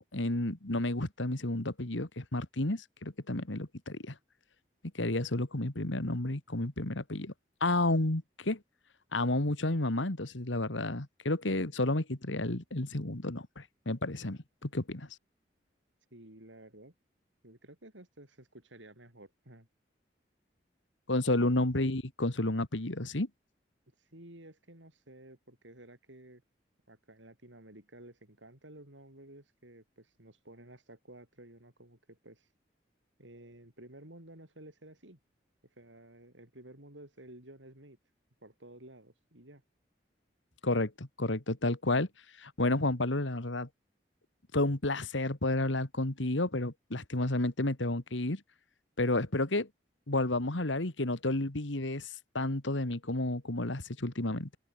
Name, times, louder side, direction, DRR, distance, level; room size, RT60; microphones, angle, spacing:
voice 1, 0.0-4.1 4.9-7.3 7.6-8.6 9.1-15.1 21.1-23.3 40.6-42.1 42.4-43.7 44.5-48.4 49.0-49.7 50.1-52.1 52.3-54.5, left 2 dB, 90° left, 2.3 m, -31 dB
voice 2, 16.1-16.9 17.4-19.7 21.6-21.7 24.0-26.4 26.9-32.5 33.2-35.2 35.8-38.0 38.4-39.6, right 1 dB, 85° right, 7.6 m, -53 dB
open air
head